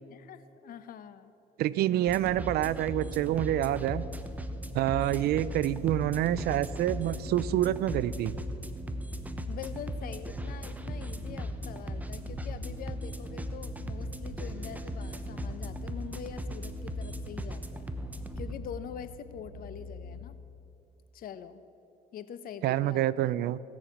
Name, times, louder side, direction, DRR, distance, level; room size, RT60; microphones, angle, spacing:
voice 1, 0.0-1.3 9.5-17.9 18.4-20.4 21.1-21.6 22.1-23.3, left 8 dB, 60° left, 12 dB, 0.8 m, -44 dB
voice 2, 1.6-4.0 4.7-8.4 22.6-23.6, right 13 dB, 70° right, 19 dB, 0.4 m, -27 dB
sound 1, 2.1-18.6, equal, 10° right, 0.9 m, -38 dB
sound 2, 2.8-20.2, left 3 dB, 35° right, 2.4 m, -45 dB
17.0 x 6.5 x 8.6 m, 2.9 s
cardioid pair, 110°, 17 cm